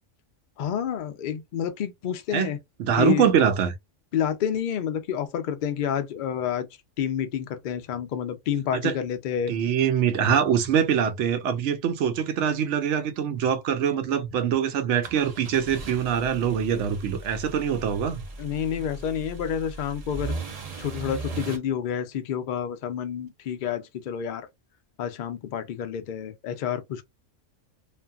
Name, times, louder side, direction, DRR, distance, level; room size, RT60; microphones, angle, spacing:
voice 1, 0.6-2.6 3.0-3.3 4.1-6.7 7.0-9.5 18.4-20.3 20.8-24.5 25.0-27.0, left 9 dB, 60° left, 0.5 m, -29 dB
voice 2, 2.8-3.7 8.7-9.0 9.5-18.2, right 8 dB, 75° right, 0.9 m, -24 dB
sound 1, 15.0-21.6, right 3 dB, 40° right, 0.6 m, -38 dB
2.6 x 2.5 x 2.3 m
omnidirectional pair, 1.3 m